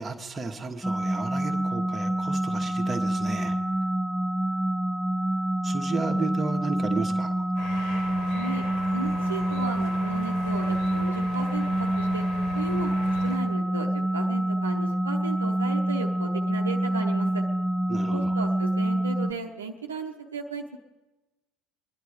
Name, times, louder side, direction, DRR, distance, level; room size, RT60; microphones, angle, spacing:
voice 1, 0.0-3.6 5.6-7.5 17.9-18.3, right 3 dB, 20° right, 3 dB, 1.5 m, -33 dB
sound 1, 0.8-19.3, right 1 dB, 10° left, 1.1 m, -27 dB
sound 2, 7.6-13.4, left 3 dB, 55° left, 2.8 m, -39 dB
voice 2, 8.3-8.6 8.9-12.3 12.5-12.9 13.2-17.4 18.1-20.8, right 4 dB, 80° right, 3 dB, 0.8 m, -35 dB
25.0 x 10.5 x 5.1 m, 1.2 s
figure-of-eight pair, 65°, 0 cm